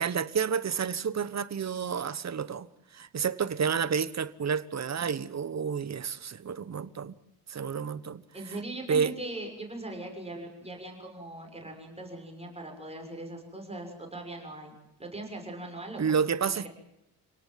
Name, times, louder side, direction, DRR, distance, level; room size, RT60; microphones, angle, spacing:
voice 1, 0.0-2.7 2.9-7.1 7.5-8.2 8.9-9.1 16.0-16.7, right 6 dB, 40° right, 1.2 m, -30 dB
voice 2, 8.3-14.7 15.0-16.7, right 2 dB, 15° right, 6.5 m, -40 dB
28.5 x 18.5 x 7.6 m
cardioid pair, 120°, 39 cm